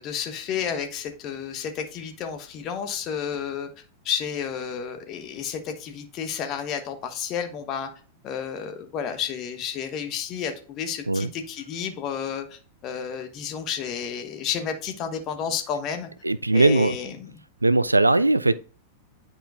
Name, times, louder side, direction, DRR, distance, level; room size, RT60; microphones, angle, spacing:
voice 1, 0.0-3.7 4.0-7.9 8.2-16.1 16.5-17.4, left 7 dB, 35° left, 1.2 m, -31 dB
voice 2, 16.2-17.0 17.6-18.6, right 2 dB, 85° right, 0.3 m, -19 dB
10.5 x 4.4 x 2.5 m
figure-of-eight pair, 95°, 0 cm